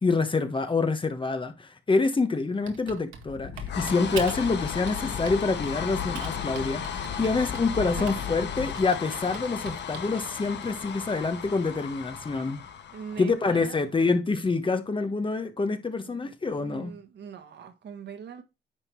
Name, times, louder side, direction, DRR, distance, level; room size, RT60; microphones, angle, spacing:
voice 1, 0.0-12.6 13.2-17.0, left 3 dB, 25° left, 1.3 m, -27 dB
Typing, 2.7-4.5 4.9-5.8 6.1-8.4 8.7-10.2, right 7 dB, 80° right, 1.8 m, -41 dB
sound 1, 3.2-13.7, left 8 dB, 60° left, 1.5 m, -35 dB
voice 2, 12.9-13.8 16.1-18.4, right 7 dB, 60° right, 1.8 m, -42 dB
9.8 x 3.9 x 4.7 m
cardioid pair, 90°, 20 cm